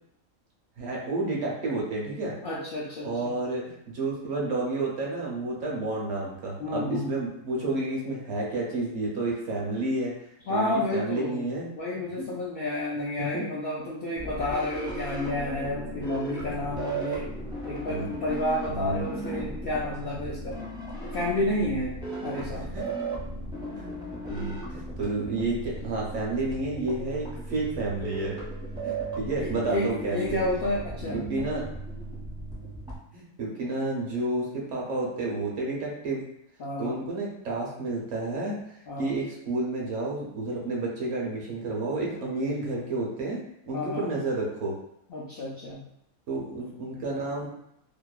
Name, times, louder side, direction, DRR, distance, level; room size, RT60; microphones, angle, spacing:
voice 1, 0.8-2.4 3.0-10.1 10.5-11.7 12.2-12.3 13.2-13.4 17.9-18.1 18.7-19.1 22.4-22.8 23.7-23.9 24.3-28.4 28.8-30.4 31.1-31.7 33.1-36.2 36.8-38.6 39.0-44.8 46.3-47.5, right 2 dB, 65° right, -3 dB, 0.8 m, -30 dB
voice 2, 2.4-3.3 6.6-7.1 10.5-11.4 11.8-17.3 17.6-20.6 21.0-22.0 22.2-22.6 29.4-31.2 36.6-36.9 38.9-39.1 43.7-44.0 45.1-45.8, left 1 dB, 70° left, -6 dB, 0.5 m, -30 dB
sound 1, 14.1-33.0, right 2 dB, 5° right, 0.4 m, -36 dB
2.8 x 2.0 x 2.3 m, 0.75 s
omnidirectional pair, 1.5 m